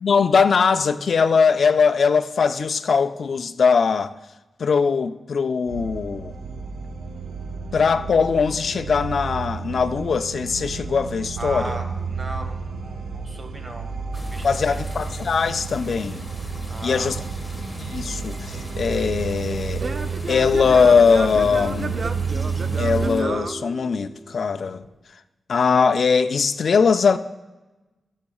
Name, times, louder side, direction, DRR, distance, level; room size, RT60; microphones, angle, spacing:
voice 1, 0.0-4.1 4.6-6.3 7.7-11.8 14.4-16.2 16.8-17.2 17.8-19.8 20.3-22.0 22.7-24.8 25.5-27.2, left 5 dB, 70° left, 0.4 m, -20 dB
sound 1, 5.7-23.1, right 5 dB, 85° right, 0.7 m, -31 dB
voice 2, 11.4-13.9 14.1-14.8 16.7-17.1, right 2 dB, 35° right, 1.3 m, -36 dB
sound 2, 14.1-23.2, left 1 dB, 10° left, 1.5 m, -40 dB
Singing / Plucked string instrument, 18.5-24.4, right 3 dB, 50° right, 0.5 m, -33 dB
15.0 x 7.2 x 2.3 m
cardioid pair, 75°, 0 cm